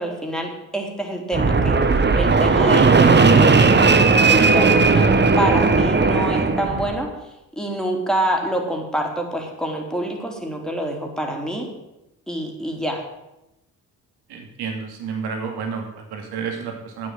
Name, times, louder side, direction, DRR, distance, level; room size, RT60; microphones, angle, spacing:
voice 1, 0.0-3.8 4.2-7.1 7.5-11.7 12.3-13.0, right 1 dB, ahead, 1 dB, 3.4 m, -26 dB
Fixed-wing aircraft airplane, 1.3-7.0, right 4 dB, 25° right, 1.1 m, -16 dB
voice 2, 14.3-17.1, right 5 dB, 75° right, 2 dB, 2.6 m, -30 dB
9.3 x 7.5 x 7.7 m, 0.90 s
hypercardioid pair, 55°, 40 cm